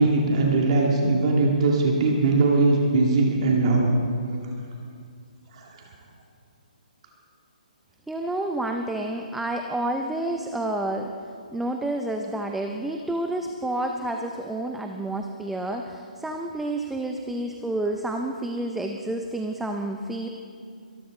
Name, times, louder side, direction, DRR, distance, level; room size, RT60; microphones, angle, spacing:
voice 1, 0.0-3.9 5.5-5.7, right 3 dB, 45° right, -1 dB, 2.1 m, -20 dB
voice 2, 8.1-11.1 11.5-20.3, right 1 dB, 5° right, 3 dB, 0.5 m, -29 dB
23.0 x 12.5 x 3.8 m, 2.3 s
hypercardioid pair, 150°, 5 cm